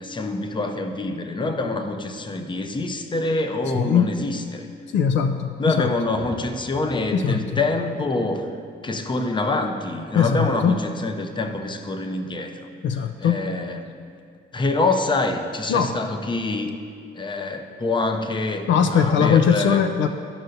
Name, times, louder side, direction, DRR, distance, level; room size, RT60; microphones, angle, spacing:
voice 1, 0.0-4.7 5.6-8.5 8.8-12.6 12.9-13.8 14.5-16.7 17.1-19.8, left 2 dB, 25° left, 6 dB, 0.6 m, -26 dB
voice 2, 3.7-4.1 4.9-5.9 7.1-7.5 10.1-10.8 12.8-13.4 15.7-15.9 18.7-20.1, left 7 dB, 70° left, 7 dB, 0.4 m, -20 dB
sound 1, 6.0-8.3, right 3 dB, 15° right, 0.4 m, -42 dB
12.5 x 5.5 x 2.7 m, 2.3 s
cardioid pair, 90°, 20 cm